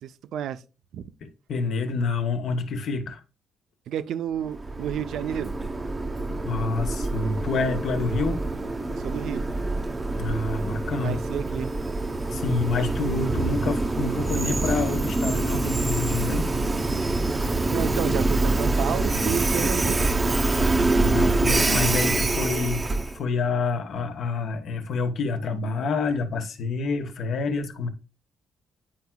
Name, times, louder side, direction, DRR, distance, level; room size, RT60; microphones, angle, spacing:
voice 1, 0.0-0.6 0.9-1.0 3.9-5.5 8.9-9.4 11.0-11.7 17.7-20.0, right 10 dB, 75° right, 0.4 m, -31 dB
voice 2, 1.5-3.2 6.4-8.4 10.2-11.2 12.3-16.5 21.0-22.9 23.1-27.9, left 3 dB, 65° left, 1.0 m, -27 dB
Train, 4.4-23.2, right 2 dB, 25° right, 0.6 m, -25 dB
9.7 x 4.6 x 2.2 m
cardioid pair, 90°, 0 cm